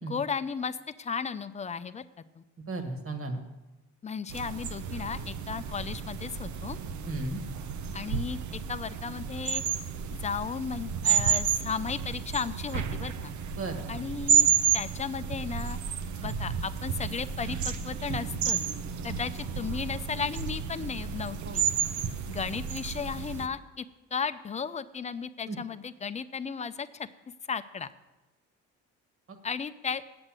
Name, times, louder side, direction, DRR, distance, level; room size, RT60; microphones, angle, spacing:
voice 1, 0.0-2.0 2.4-2.5 4.0-6.8 7.9-9.6 10.2-13.3 13.9-14.5 14.7-15.8 16.2-18.6 19.0-21.6 22.3-23.8 24.1-27.1 27.5-27.9 29.4-30.0, left 6 dB, 25° left, 12 dB, 0.5 m, -35 dB
voice 2, 2.7-3.4 7.1-7.4 13.6-14.0 21.4-21.6 25.5-25.6 29.3-29.4, right 2 dB, 45° right, 5 dB, 1.7 m, -35 dB
sound 1, 4.3-23.5, right 7 dB, 75° right, 0.7 m, -31 dB
8.0 x 7.7 x 7.5 m, 1.1 s
cardioid pair, 90°, 30 cm